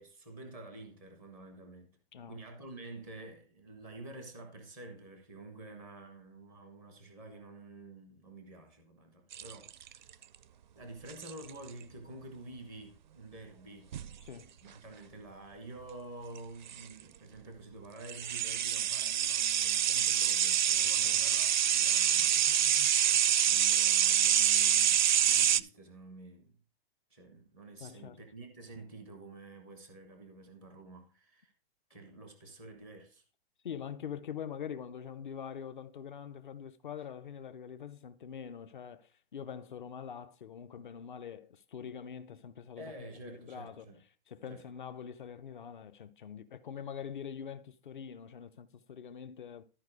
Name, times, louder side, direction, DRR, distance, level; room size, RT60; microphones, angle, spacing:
voice 1, 0.0-2.0 2.3-10.3 10.7-13.9 14.6-22.4 23.4-26.6 27.1-31.5 31.9-33.2 42.8-44.0 44.5-44.6, right 2 dB, 5° left, 0.5 m, -49 dB
sound 1, 9.3-10.1 11.1-11.5 13.9-14.1 16.4-16.5 16.7-16.8 18.0-25.6, right 9 dB, 50° right, 0.4 m, -26 dB
voice 2, 14.2-14.6 21.0-21.3 27.8-28.2 33.6-42.9 43.2-43.9 44.3-49.6, left 8 dB, 55° left, 0.8 m, -44 dB
13.5 x 4.5 x 4.8 m
hypercardioid pair, 180°, 30 cm